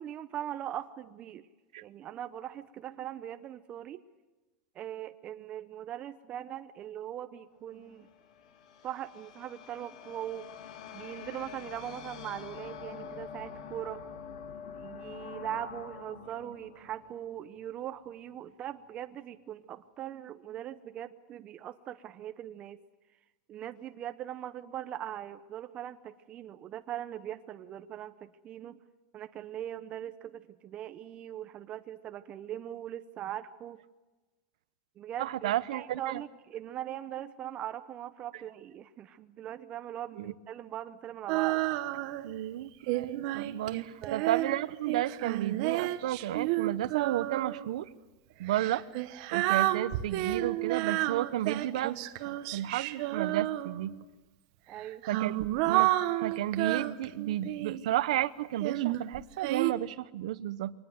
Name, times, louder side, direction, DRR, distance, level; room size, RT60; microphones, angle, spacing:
voice 1, 0.0-1.5 1.8-4.0 4.7-8.1 8.8-10.5 10.9-14.0 14.7-22.8 23.5-28.8 29.1-33.8 35.0-41.6 41.9-42.0 44.0-44.3 54.7-55.0, right 11 dB, 35° right, 9 dB, 0.8 m, -40 dB
sound 1, 7.7-18.0, left 7 dB, 85° left, 2.3 m, -46 dB
voice 2, 35.2-36.2 40.1-40.3 42.2-47.9 48.4-48.8 49.3-52.0 52.2-53.9 55.1-55.9 56.2-60.7, right 13 dB, 80° right, 15 dB, 0.9 m, -32 dB
Female singing, 41.3-42.3 42.9-47.7 48.5-54.0 54.8-57.9 58.6-59.7, right 16 dB, 60° right, 1.2 m, -31 dB
23.5 x 19.5 x 7.9 m, 1.2 s
supercardioid pair, 135°, 4 cm